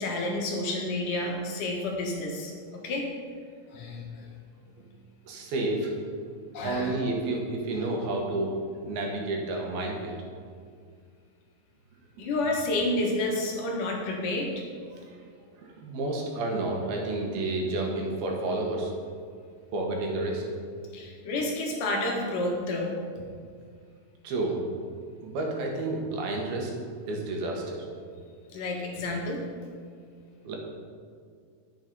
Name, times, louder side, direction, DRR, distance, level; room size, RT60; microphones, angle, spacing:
voice 1, 0.0-3.1 3.7-4.1 6.5-7.0 12.2-14.6 20.9-23.0 28.5-29.4, left 2 dB, 70° left, 0 dB, 2.7 m, -30 dB
voice 2, 5.3-5.9 6.6-8.5 8.8-10.2 14.9-15.0 15.6-18.9 19.7-20.4 24.2-24.6 25.2-26.7 27.1-27.9 30.4-30.6, right 2 dB, 85° right, 0 dB, 3.4 m, -30 dB
10.5 x 7.5 x 5.4 m, 2.1 s
omnidirectional pair, 4.2 m